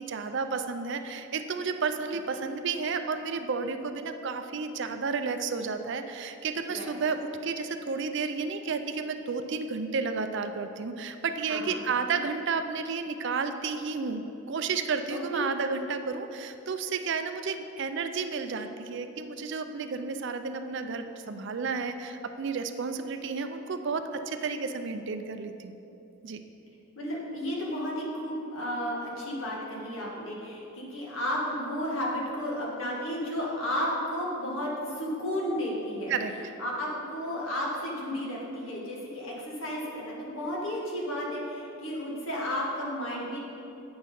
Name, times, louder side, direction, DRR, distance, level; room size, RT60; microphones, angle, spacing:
voice 1, 0.0-25.8 26.2-26.4 36.1-36.5, right 5 dB, 55° right, 8 dB, 0.4 m, -32 dB
voice 2, 11.5-11.8 15.1-15.4 27.0-36.1 36.6-43.4, equal, 65° left, -3 dB, 1.8 m, -33 dB
8.6 x 6.3 x 5.3 m, 2.9 s
head